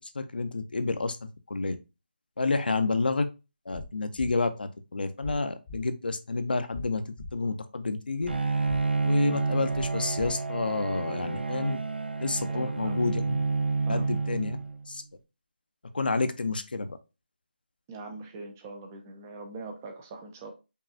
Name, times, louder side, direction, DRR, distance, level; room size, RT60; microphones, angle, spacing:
voice 1, 0.0-1.8 2.4-3.3 3.7-7.0 7.3-8.3 9.0-11.8 12.2-13.4 13.9-14.6 14.9-15.0 15.9-17.0, left 3 dB, 65° left, 9 dB, 0.6 m, -29 dB
sound 1, 3.7-3.9 4.2-4.3 5.2-5.3 5.7-5.8 6.7-6.8 7.2-7.3 8.2-8.3 8.7-8.8 9.7-9.9 10.2-10.3, left 3 dB, 20° left, 0.7 m, -40 dB
Bowed string instrument, 8.3-14.9, right 4 dB, 85° right, 0.6 m, -29 dB
voice 2, 12.5-13.1 13.9-14.1 17.9-20.5, right 3 dB, 15° right, 4 dB, 0.4 m, -42 dB
5.3 x 2.3 x 2.6 m, 0.28 s
figure-of-eight pair, 165°, 5 cm